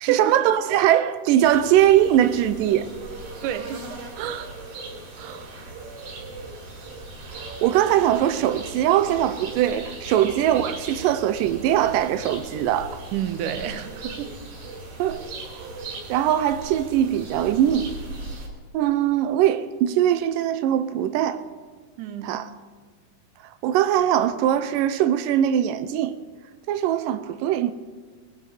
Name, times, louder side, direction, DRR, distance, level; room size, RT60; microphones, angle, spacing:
voice 1, 0.0-2.9 7.4-13.0 15.0-15.2 16.1-17.9 18.7-21.4 22.2-22.5 23.6-26.1 26.7-27.7, right 11 dB, 90° right, 1.9 m, -21 dB
sound 1, 1.4-18.5, right 2 dB, 50° right, 4.1 m, -38 dB
voice 2, 3.4-4.5 5.1-5.7 13.1-14.3 22.0-22.3, right 10 dB, 75° right, 2.0 m, -31 dB
19.5 x 13.0 x 4.9 m
omnidirectional pair, 4.6 m